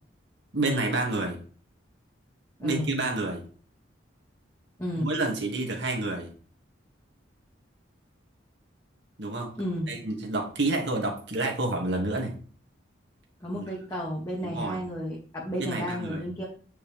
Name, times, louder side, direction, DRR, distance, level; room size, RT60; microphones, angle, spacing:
voice 1, 0.5-1.4 2.6-3.4 5.0-6.3 9.2-9.5 9.9-12.3 14.4-14.8 15.6-16.2, right 2 dB, 60° right, 0 dB, 2.4 m, -29 dB
voice 2, 2.6-2.9 4.8-5.1 9.6-9.9 13.4-16.4, equal, 15° left, -4 dB, 1.8 m, -32 dB
9.6 x 5.7 x 3.6 m, 0.42 s
head